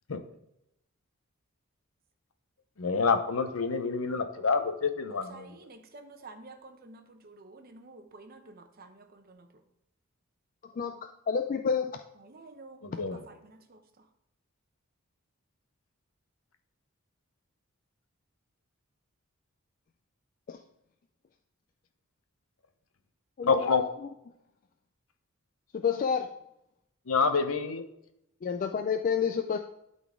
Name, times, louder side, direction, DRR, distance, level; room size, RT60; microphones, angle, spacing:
voice 1, 2.8-5.6 12.8-13.2 23.4-23.8 27.1-27.8, left 4 dB, 70° left, 8 dB, 0.7 m, -27 dB
voice 2, 5.3-9.5 12.1-14.1, right 3 dB, 45° right, 6 dB, 0.8 m, -51 dB
voice 3, 10.6-11.0 11.3-12.0 20.5-20.6 23.4-23.9 25.7-26.3 28.4-29.6, left 6 dB, 40° left, 6 dB, 0.3 m, -29 dB
11.5 x 4.1 x 3.6 m, 0.82 s
head